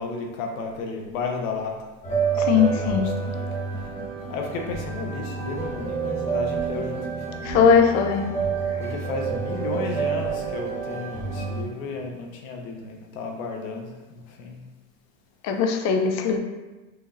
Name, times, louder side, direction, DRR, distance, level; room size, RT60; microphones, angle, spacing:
voice 1, 0.0-1.7 2.6-3.5 4.3-7.4 8.8-14.6, left 4 dB, 85° left, 2 dB, 1.0 m, -33 dB
sound 1, 2.0-11.6, right 5 dB, 15° left, 1.1 m, -28 dB
voice 2, 2.4-3.1 7.5-8.2 15.4-16.4, left 6 dB, 45° left, 5 dB, 0.6 m, -19 dB
6.3 x 3.0 x 2.6 m, 1.1 s
supercardioid pair, 140°, 40 cm